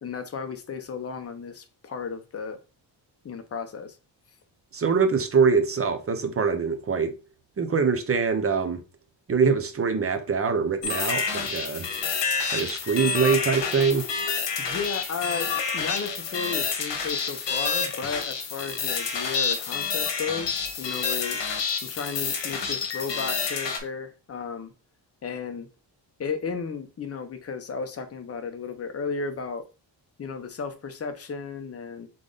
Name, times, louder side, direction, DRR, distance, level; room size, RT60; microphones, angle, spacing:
voice 1, 0.0-2.6 3.2-4.0 14.6-21.4 21.8-24.7 25.2-25.7 26.2-29.7 30.2-32.1, left 5 dB, 35° left, 0.7 m, -34 dB
voice 2, 4.7-7.2 7.6-8.8 9.3-11.9 12.5-14.1, right 5 dB, 30° right, 0.6 m, -24 dB
sound 1, 10.8-23.8, left 5 dB, 70° left, 1.1 m, -29 dB
3.8 x 3.4 x 3.9 m
wide cardioid pair, 150°, 44 cm